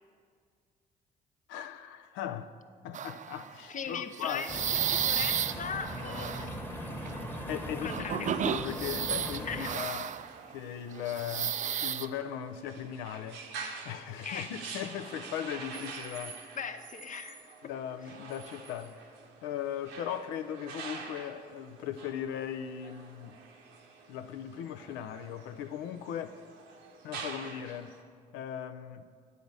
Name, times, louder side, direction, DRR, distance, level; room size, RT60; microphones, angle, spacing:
voice 1, 1.5-2.5 2.8-4.5 7.5-10.1 10.5-13.4 13.8-16.4 17.6-19.0 19.4-23.4 24.1-26.4 27.0-27.9 28.3-29.1, left 9 dB, 70° left, 0.5 m, -38 dB
sound 1, 2.9-3.5 4.1-6.5 7.0-7.3 7.9-10.5 11.0-12.1, right 9 dB, 40° right, 0.4 m, -33 dB
voice 2, 3.7-6.6 7.8-8.4 9.4-9.7 14.2-14.5 15.7-15.9 16.5-17.4, left 6 dB, 40° left, 0.7 m, -39 dB
sound 2, 4.5-9.7, equal, 10° left, 1.2 m, -39 dB
sound 3, 8.1-28.0, right 5 dB, 75° right, 0.9 m, -47 dB
10.0 x 4.0 x 7.3 m
hypercardioid pair, 50°, 20 cm